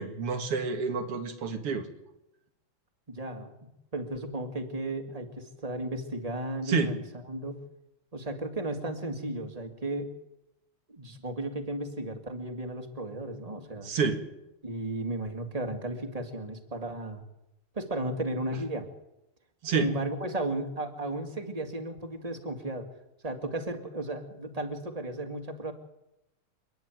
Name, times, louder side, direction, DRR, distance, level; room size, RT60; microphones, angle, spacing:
voice 1, 0.0-1.9 6.7-6.9 13.8-14.2 19.6-19.9, right 4 dB, 85° right, 6 dB, 2.9 m, -28 dB
voice 2, 3.1-7.0 7.3-7.6 8.1-10.1 10.9-13.9 14.6-17.2 17.7-18.9 19.7-22.9 23.2-25.7, right 1 dB, 15° right, 5 dB, 2.0 m, -34 dB
28.5 x 10.5 x 9.1 m, 0.91 s
omnidirectional pair, 2.4 m